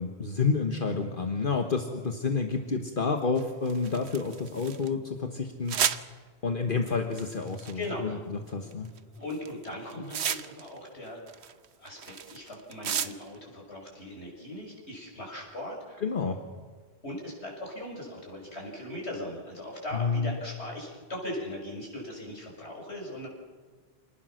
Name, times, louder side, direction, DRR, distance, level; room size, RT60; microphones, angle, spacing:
voice 1, 0.0-5.8 6.4-8.9 16.0-16.4 19.9-20.4, left 4 dB, 55° left, 5 dB, 1.5 m, -29 dB
sound 1, 3.4-4.9 5.7-6.0 7.1-7.9 8.7-9.0 9.3-10.8 11.0-13.4, right 8 dB, 85° right, 1.1 m, -32 dB
voice 2, 7.7-8.2 8.8-11.5 11.8-16.0 17.0-23.3, left 1 dB, 85° left, -1 dB, 6.7 m, -39 dB
27.5 x 19.0 x 6.4 m, 1.5 s
omnidirectional pair, 1.1 m